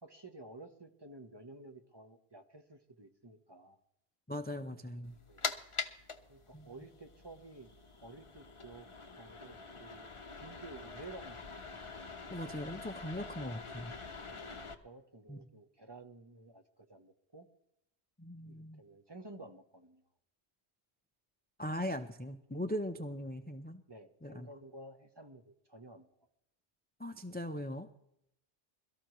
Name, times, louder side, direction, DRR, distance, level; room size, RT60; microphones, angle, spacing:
voice 1, 0.0-3.8 5.3-5.5 6.3-8.9 9.2-10.1 10.4-11.8 14.3-17.5 18.4-20.0 23.9-26.1, right 2 dB, 25° right, 7 dB, 0.9 m, -53 dB
voice 2, 4.3-5.2 6.5-6.7 12.3-13.9 15.3-15.4 18.2-18.8 21.6-23.8 24.2-24.5 27.0-27.9, equal, 15° left, 8 dB, 0.4 m, -40 dB
sound 1, 5.0-14.7, left 4 dB, 30° left, 0.8 m, -45 dB
22.5 x 13.0 x 3.1 m, 0.80 s
omnidirectional pair, 1.1 m